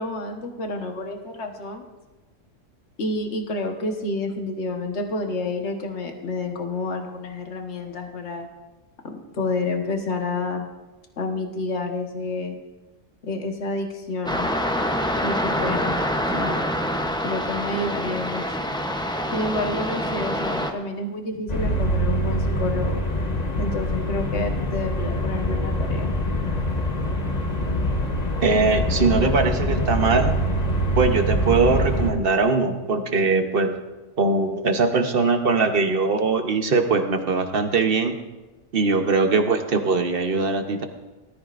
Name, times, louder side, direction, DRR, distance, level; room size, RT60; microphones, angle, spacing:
voice 1, 0.0-1.8 3.0-8.5 9.0-10.7 11.2-12.6 13.2-14.5 15.2-16.0 16.3-16.6 17.2-18.6 19.3-23.0 23.6-26.1, left 2 dB, 60° left, 3 dB, 1.6 m, -29 dB
sound 1, 14.3-20.7, equal, 5° left, 0.6 m, -26 dB
sound 2, 21.5-32.1, equal, 35° left, 1.2 m, -24 dB
voice 2, 28.4-30.3 31.0-33.7 34.2-38.2 38.7-40.9, right 4 dB, 50° right, 6 dB, 1.1 m, -21 dB
18.0 x 13.5 x 2.5 m, 1.1 s
omnidirectional pair, 1.3 m